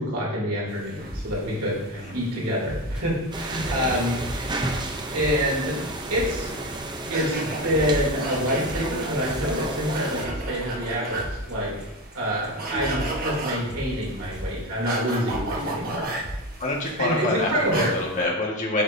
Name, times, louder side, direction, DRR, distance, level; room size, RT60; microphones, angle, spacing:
voice 1, 0.0-4.6 5.1-5.7 6.1-6.5 7.1-11.9 12.1-16.1 17.0-17.9, equal, 75° right, -4 dB, 2.8 m, -27 dB
sound 1, 0.7-18.2, right 2 dB, 40° right, 1.1 m, -36 dB
sound 2, 1.1-1.3 1.7-1.9 2.6-3.8 4.2-4.6 4.9-5.0 5.2-5.5 5.8-5.9 6.1-6.5 6.7-7.1 7.4-12.1 12.4-12.5 12.7-14.6 15.3-15.6 16.2-16.5 16.8-16.9 17.2-17.3, equal, 5° right, 1.4 m, -35 dB
sound 3, 3.3-10.3, right 2 dB, 20° right, 0.6 m, -32 dB
voice 2, 16.6-18.8, left 2 dB, 35° left, -2 dB, 1.5 m, -27 dB
8.6 x 6.5 x 2.7 m, 0.95 s
head